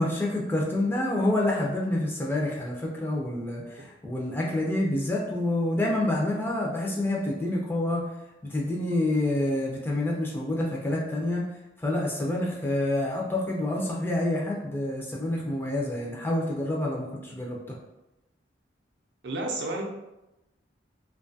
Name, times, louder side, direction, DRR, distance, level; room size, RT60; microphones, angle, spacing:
voice 1, 0.0-8.0 8.4-11.4 11.8-17.6, left 1 dB, 10° left, -3 dB, 0.3 m, -27 dB
voice 2, 19.2-19.8, right 2 dB, 70° right, 0 dB, 0.5 m, -30 dB
2.5 x 2.3 x 2.6 m, 0.93 s
head